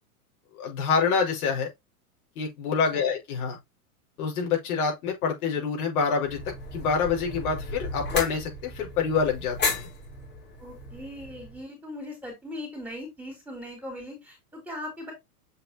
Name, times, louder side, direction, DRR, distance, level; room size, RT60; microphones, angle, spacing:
voice 1, 0.6-1.7 2.4-3.6 4.2-6.4 6.7-9.9, left 5 dB, 70° left, 5.9 m, -26 dB
sound 1, 6.2-11.6, left 2 dB, 25° left, 4.3 m, -34 dB
voice 2, 10.6-15.1, left 1 dB, 5° right, 5.0 m, -39 dB
8.1 x 5.9 x 2.9 m
supercardioid pair, 145°, 46 cm